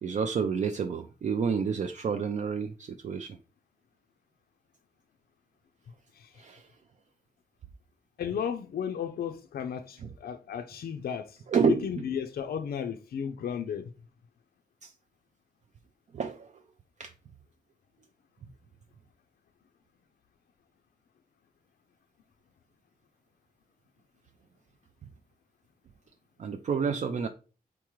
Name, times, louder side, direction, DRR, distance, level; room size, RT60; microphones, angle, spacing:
voice 1, 0.0-3.4 6.4-6.7 11.5-11.8 14.8-14.9 16.1-16.5 17.0-17.1 26.4-27.3, right 6 dB, 50° right, 0.4 m, -29 dB
voice 2, 8.2-13.9, left 8 dB, 70° left, 0.4 m, -34 dB
4.7 x 3.6 x 3.0 m
wide cardioid pair, 155°, 16 cm